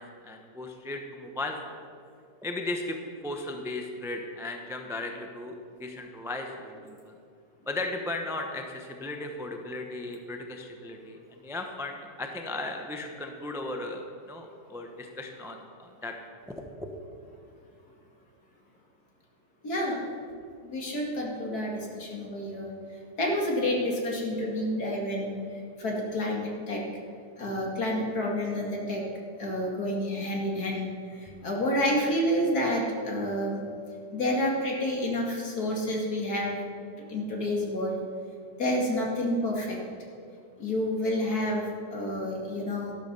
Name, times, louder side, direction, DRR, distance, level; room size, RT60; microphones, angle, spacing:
voice 1, 0.0-1.6 2.4-3.0 3.2-7.1 7.7-16.1 16.6-16.7, left 2 dB, 5° right, 3 dB, 0.5 m, -36 dB
voice 2, 19.6-20.1 20.6-22.7 23.2-25.4 25.8-26.9 27.4-29.0 29.4-33.6 34.1-36.6 37.1-38.0 38.6-39.8 40.6-42.9, left 1 dB, 55° left, -1 dB, 2.6 m, -29 dB
12.5 x 12.0 x 5.5 m, 2.4 s
omnidirectional pair, 2.0 m